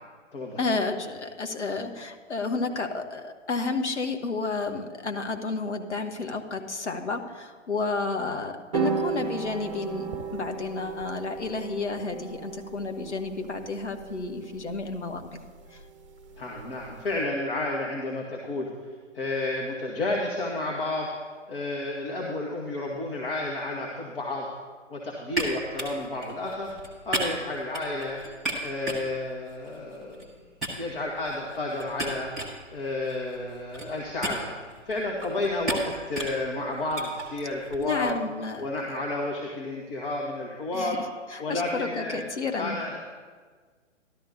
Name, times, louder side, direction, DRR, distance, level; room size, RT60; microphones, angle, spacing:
voice 1, 0.6-15.4 15.7-15.8 37.8-39.0 40.7-41.0 41.3-42.8, left 3 dB, 65° left, 6 dB, 1.3 m, -31 dB
sound 1, 8.7-17.2, right 5 dB, 25° right, 0.7 m, -35 dB
voice 2, 16.4-18.7 19.1-21.1 21.5-24.5 24.9-26.7 27.0-28.2 28.6-30.3 30.7-32.3 32.7-34.6 34.8-38.1 38.6-41.0 41.4-42.2 42.6-43.1, left 2 dB, 45° left, -2 dB, 1.5 m, -31 dB
sound 2, 25.3-30.3 30.6-38.1, right 1 dB, ahead, 0.3 m, -36 dB
13.5 x 12.0 x 2.7 m, 1.5 s
figure-of-eight pair, 130°, 37 cm